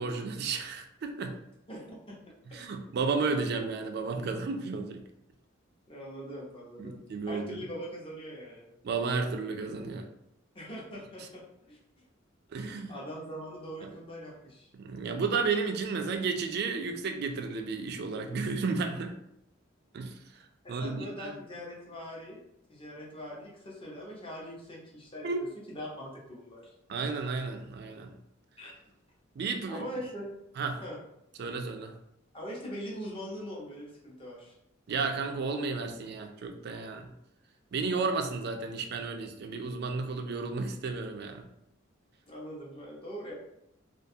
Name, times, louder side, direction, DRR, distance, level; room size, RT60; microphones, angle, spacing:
voice 1, 0.0-1.4 2.5-5.0 6.8-7.6 8.8-10.1 12.5-12.9 13.8-13.9 14.7-19.2 19.9-20.2 20.7-21.4 25.2-25.4 26.9-28.1 29.4-29.9 30.6-30.8 31.4-31.9 34.9-37.1 37.7-41.4, right 4 dB, 55° right, 5 dB, 0.3 m, -32 dB
voice 2, 1.7-2.2 5.9-7.0 7.3-8.7 10.5-11.8 12.6-14.7 20.8-22.4 22.7-25.3 25.7-26.7 28.6-28.8 29.7-30.3 30.8-31.0 32.3-34.5 42.3-43.3, equal, 30° left, -4 dB, 0.7 m, -42 dB
2.4 x 2.2 x 2.6 m, 0.78 s
head